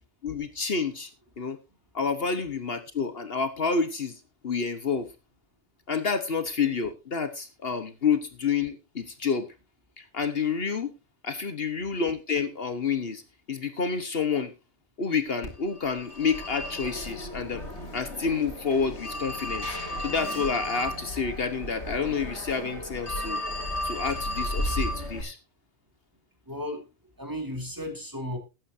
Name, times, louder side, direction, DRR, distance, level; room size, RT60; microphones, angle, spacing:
voice 1, 0.2-1.1 1.4-1.6 1.9-4.2 4.4-5.1 5.9-9.5 10.0-10.9 11.2-13.2 13.5-14.5 15.0-17.6 17.9-23.4 23.8-25.4, left 5 dB, 60° left, 10 dB, 1.3 m, -29 dB
Telephone, 15.4-25.2, left 1 dB, 75° left, 3.5 m, -34 dB
voice 2, 26.4-26.9 27.2-28.4, left 1 dB, 15° right, 3 dB, 3.1 m, -34 dB
20.0 x 9.0 x 2.7 m, 0.27 s
omnidirectional pair, 1.2 m